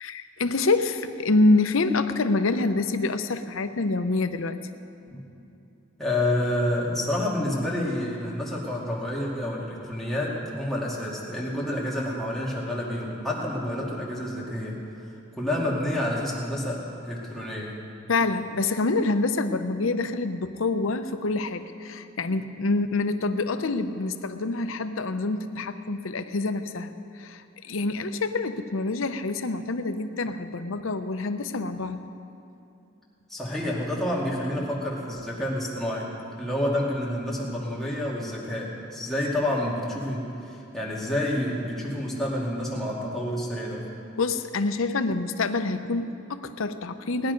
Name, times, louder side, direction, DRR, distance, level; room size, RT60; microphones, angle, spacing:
voice 1, 0.0-4.6 18.1-26.9 27.2-32.0 44.2-47.3, left 3 dB, 85° left, 9 dB, 0.7 m, -26 dB
voice 2, 6.0-14.8 15.4-17.7 33.3-36.1 36.4-43.9, left 1 dB, ahead, -6 dB, 2.3 m, -29 dB
19.0 x 10.5 x 5.3 m, 2.8 s
head